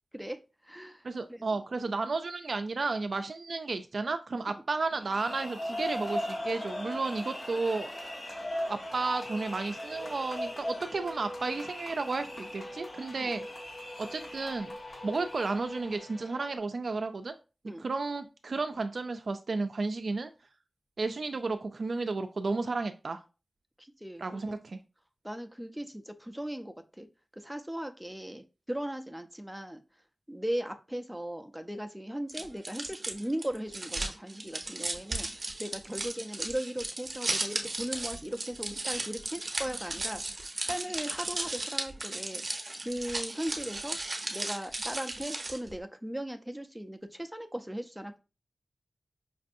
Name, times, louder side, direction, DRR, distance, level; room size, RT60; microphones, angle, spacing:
voice 1, 0.1-1.4 1.8-1.9 13.2-13.3 17.7-17.8 23.8-24.5 25.2-27.1 27.3-29.8 30.3-42.4 42.8-44.0 44.3-48.2, right 1 dB, 5° right, 6 dB, 0.5 m, -38 dB
voice 2, 1.0-8.0 8.7-13.4 14.0-14.7 15.0-17.3 17.8-20.3 21.0-23.2 24.2-24.8, right 3 dB, 65° right, 8 dB, 0.3 m, -33 dB
sound 1, 4.9-16.0, left 1 dB, 45° left, 1.9 m, -39 dB
sound 2, 8.9-16.6, left 1 dB, 60° left, 0.9 m, -46 dB
sound 3, 32.3-45.7, right 2 dB, 45° right, 0.7 m, -36 dB
5.2 x 2.5 x 2.5 m, 0.31 s
wide cardioid pair, 90°, 0 cm